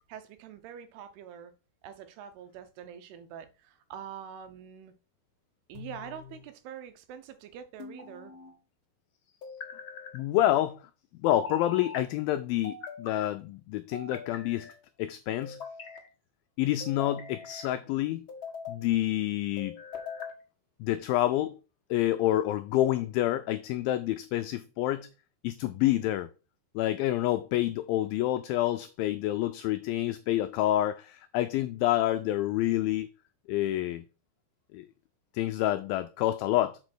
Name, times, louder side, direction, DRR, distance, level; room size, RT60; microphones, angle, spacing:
voice 1, 0.1-1.5 1.8-4.9 5.7-8.3, right 8 dB, 80° right, 2.8 m, -45 dB
sound 1, 5.7-6.4 7.8-8.6 9.4-10.2 11.3-12.0 12.6-13.3 13.9-14.8 15.4-16.1 16.8-17.7 18.3-18.9 19.6-20.4, left 5 dB, 50° left, 1.5 m, -42 dB
voice 2, 10.1-10.8 11.2-14.7 15.0-15.6 16.6-18.3 18.7-19.8 20.8-21.6 21.9-25.1 25.4-26.3 26.8-33.1 33.5-34.0 34.7-34.9 35.3-36.8, left 14 dB, 90° left, 2.0 m, -28 dB
6.5 x 5.1 x 6.0 m
omnidirectional pair, 4.7 m